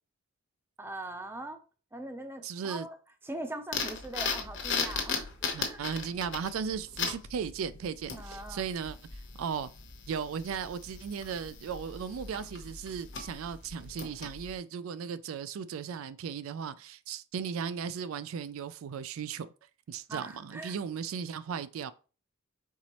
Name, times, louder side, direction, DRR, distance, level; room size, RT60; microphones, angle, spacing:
voice 1, 0.8-1.6 1.9-3.0 3.2-5.8 8.1-8.7 20.1-20.8, right 1 dB, 10° right, 0.5 m, -41 dB
voice 2, 2.4-2.9 5.5-9.0 9.4-9.7 10.1-19.5 19.9-21.9, right 7 dB, 80° right, 0.3 m, -36 dB
sound 1, 3.7-14.5, left 5 dB, 60° left, 0.9 m, -38 dB
4.6 x 4.0 x 2.9 m
head